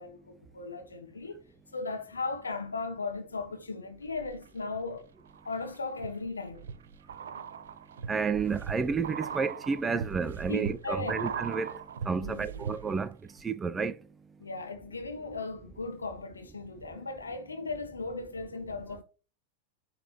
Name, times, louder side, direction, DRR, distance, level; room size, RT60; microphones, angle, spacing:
voice 1, 0.0-1.4 1.7-5.1 5.4-6.6 10.5-11.2 12.2-12.6 14.4-19.0, left 3 dB, 75° left, 1.2 m, -37 dB
sound 1, 4.1-4.8 5.3-13.1 13.4-13.5, right 7 dB, 65° right, 0.6 m, -40 dB
voice 2, 8.1-11.8 12.0-13.1 13.4-13.9, right 5 dB, 15° right, 0.6 m, -30 dB
9.0 x 4.1 x 3.0 m
figure-of-eight pair, 90°, 0 cm